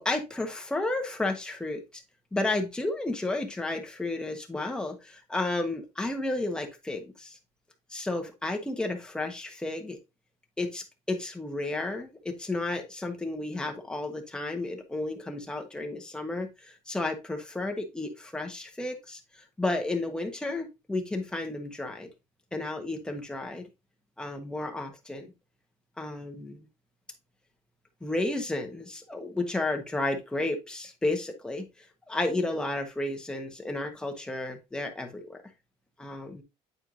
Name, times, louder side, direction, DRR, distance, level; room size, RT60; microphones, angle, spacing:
voice 1, 0.0-2.0 2.3-7.4 7.9-10.0 10.6-22.1 22.5-23.7 24.2-25.3 26.0-26.7 28.0-31.7 32.1-35.4 36.0-36.4, left 2 dB, 5° left, 2 dB, 1.1 m, -32 dB
9.0 x 4.4 x 2.6 m, 0.24 s
cardioid pair, 135°, 12 cm